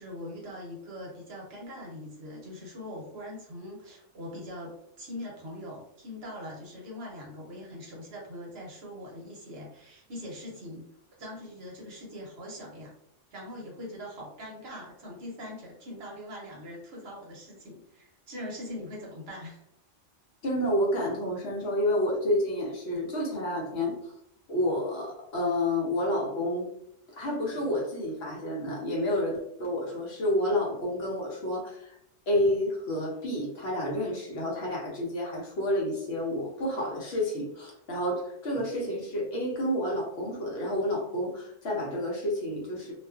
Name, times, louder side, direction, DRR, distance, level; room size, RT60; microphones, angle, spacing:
voice 1, 0.0-10.8 11.2-12.9 13.3-19.6, left 1 dB, 60° right, -2 dB, 0.9 m, -42 dB
voice 2, 20.4-24.1 24.5-26.7 27.2-31.9 32.3-42.9, left 1 dB, 65° left, -3 dB, 0.9 m, -29 dB
2.4 x 2.2 x 2.3 m, 0.72 s
omnidirectional pair, 1.2 m